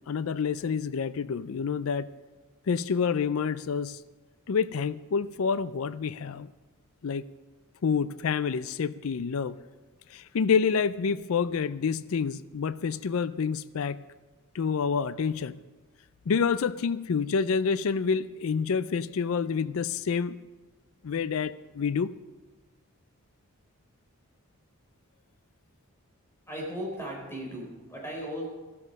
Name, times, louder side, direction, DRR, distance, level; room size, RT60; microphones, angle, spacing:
voice 1, 0.1-2.1 2.7-4.0 4.5-6.5 7.0-7.2 7.8-9.6 10.1-14.0 14.5-15.6 16.3-20.4 21.0-22.1, left 6 dB, 65° left, 16 dB, 0.4 m, -28 dB
voice 2, 26.5-28.5, equal, 10° left, -1 dB, 4.2 m, -36 dB
14.0 x 13.0 x 5.4 m, 1.2 s
head